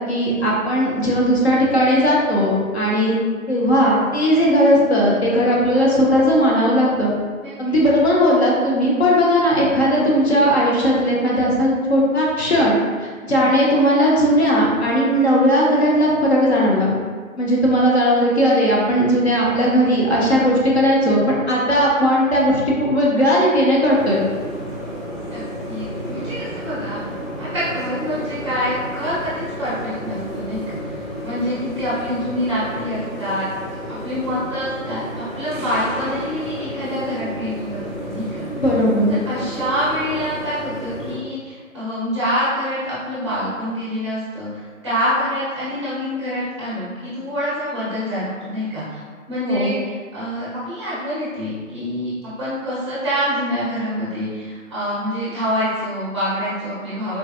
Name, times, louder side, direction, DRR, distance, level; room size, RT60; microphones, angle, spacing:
voice 1, 0.0-3.2 3.5-7.1 7.6-16.9 17.4-24.2 38.6-39.1 49.4-49.7, equal, 50° left, -4 dB, 0.7 m, -17 dB
voice 2, 7.4-7.8 13.4-13.5 25.3-27.0 27.4-30.8 31.2-33.5 33.9-38.4 39.3-49.0 49.3-57.2, equal, 20° right, -11 dB, 0.7 m, -26 dB
sound 1, 23.9-41.2, equal, 35° right, 1.1 m, -31 dB
3.9 x 2.3 x 2.3 m, 1.6 s
figure-of-eight pair, 140°, 42 cm